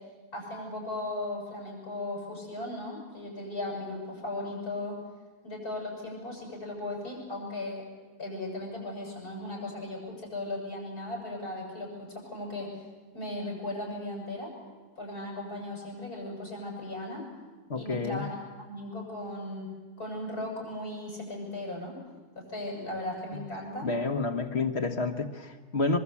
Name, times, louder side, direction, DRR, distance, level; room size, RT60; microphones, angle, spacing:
voice 1, 0.3-5.0 5.4-7.8 8.2-12.7 13.1-14.5 15.0-17.2 17.7-19.7 20.0-22.0 22.3-23.9, left 1 dB, 85° left, 0 dB, 8.2 m, -37 dB
voice 2, 17.7-18.2 23.8-26.0, left 3 dB, 45° left, 6 dB, 1.7 m, -29 dB
23.5 x 23.0 x 8.5 m, 1.3 s
omnidirectional pair, 1.6 m